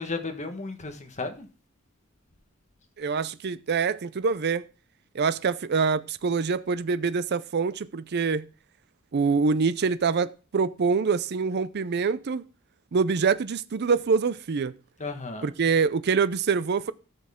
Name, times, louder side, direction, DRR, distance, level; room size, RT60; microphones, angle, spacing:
voice 1, 0.0-1.5 15.0-15.5, left 3 dB, 35° left, 1.5 m, -34 dB
voice 2, 3.0-4.7 5.1-8.5 9.1-12.4 12.9-14.7 15.4-16.9, right 5 dB, 50° right, 0.5 m, -25 dB
13.0 x 6.4 x 3.7 m
head